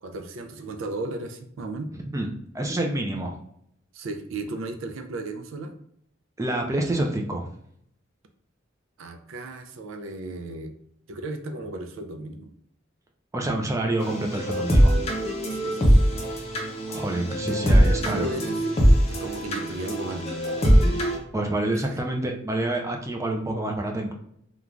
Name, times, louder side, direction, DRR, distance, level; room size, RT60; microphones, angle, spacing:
voice 1, 0.0-1.9 3.9-5.7 9.0-10.7 11.1-12.5 15.5-16.1 18.1-18.8 19.1-20.3 21.7-22.0, right 2 dB, 90° right, 7 dB, 0.4 m, -35 dB
voice 2, 2.5-3.3 6.4-7.5 13.3-15.1 16.9-18.3 21.3-24.1, right 1 dB, 15° right, 2 dB, 0.3 m, -27 dB
sound 1, 14.0-21.2, equal, 30° left, 0.6 m, -22 dB
3.1 x 2.3 x 2.4 m, 0.69 s
head